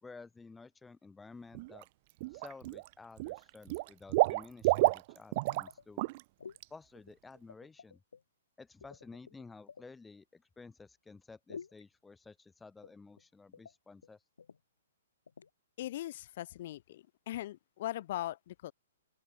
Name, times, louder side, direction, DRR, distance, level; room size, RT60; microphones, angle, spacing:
voice 1, 0.0-1.9 2.3-6.0 6.7-8.0 8.6-14.2, left 4 dB, 10° left, 3.0 m, -53 dB
Water / Liquid, 1.5-1.8 2.2-2.9 3.2-5.7 6.0-6.2 6.6-6.7, right 22 dB, 40° right, 1.3 m, -30 dB
sound 1, 5.7-6.1 6.4-6.6 7.0-8.2 8.8-9.9 11.5-11.8 12.8-13.2 13.5-13.7 14.0-14.1 14.4-14.6 15.3-15.5, left 6 dB, 70° left, 5.7 m, -50 dB
voice 2, 15.8-18.7, left 14 dB, 45° left, 4.3 m, -40 dB
open air
figure-of-eight pair, 115°, 0 cm